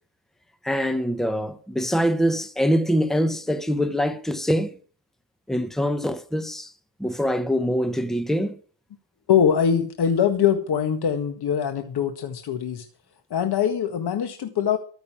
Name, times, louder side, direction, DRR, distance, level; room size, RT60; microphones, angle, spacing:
voice 1, 0.6-4.8 5.5-6.7 7.0-8.6, equal, ahead, 1.2 m, -24 dB
voice 2, 9.3-12.8 13.3-14.8, left 8 dB, 60° left, 1.7 m, -22 dB
14.0 x 6.8 x 8.6 m
cardioid pair, 105°, 45 cm